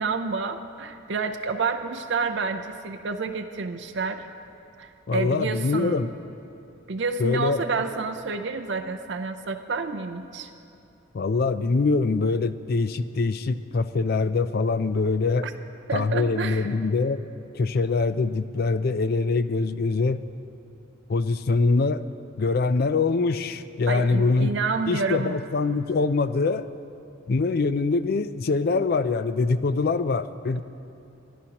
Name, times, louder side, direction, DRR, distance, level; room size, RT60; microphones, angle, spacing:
voice 1, 0.0-4.3 4.8-6.1 6.9-10.5 15.4-15.5 15.9-16.7 23.9-25.4, right 4 dB, 60° right, 7 dB, 0.5 m, -29 dB
voice 2, 5.1-6.1 7.2-7.6 11.1-15.5 15.9-17.2 17.5-20.2 21.1-22.0 22.4-24.5 24.9-26.7 27.3-30.6, left 3 dB, 50° left, 13 dB, 0.4 m, -24 dB
24.5 x 11.0 x 2.9 m, 2.7 s
head